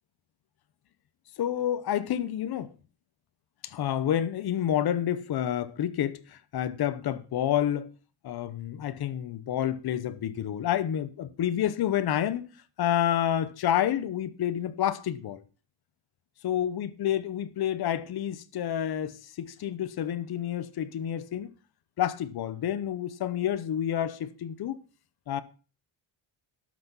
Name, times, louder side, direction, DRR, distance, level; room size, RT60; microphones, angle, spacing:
voice 1, 1.4-2.7 3.6-7.9 8.2-12.5 12.8-15.4 16.4-21.5 22.0-24.8 25.3-25.4, left 10 dB, 55° left, 0.9 m, -29 dB
12.5 x 6.1 x 5.5 m
cardioid pair, 140°, 46 cm